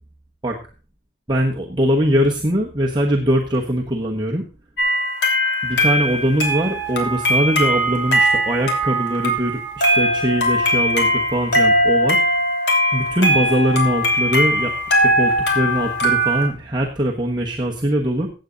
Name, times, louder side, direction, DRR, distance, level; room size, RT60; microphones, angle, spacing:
voice 1, 1.3-4.4 5.6-12.2 12.9-18.3, equal, 25° right, -1 dB, 1.2 m, -21 dB
sound 1, 4.8-16.5, equal, 65° left, 3.3 m, -20 dB
15.5 x 8.6 x 3.9 m, 0.35 s
head